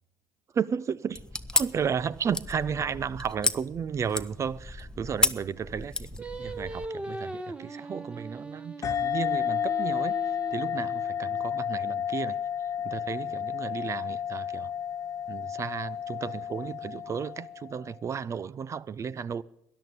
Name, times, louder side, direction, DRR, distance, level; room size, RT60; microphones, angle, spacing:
voice 1, 0.5-1.2 1.5-6.1 6.4-12.4 12.8-14.7 15.3-19.4, right 7 dB, 35° right, 0.5 m, -33 dB
sound 1, 1.1-6.9, left 2 dB, 10° left, 0.8 m, -32 dB
Singing, 6.2-11.5, right 2 dB, 10° right, 1.3 m, -40 dB
sound 2, 8.8-17.9, left 8 dB, 40° left, 0.7 m, -31 dB
13.5 x 10.5 x 8.5 m
hypercardioid pair, 75°, 9 cm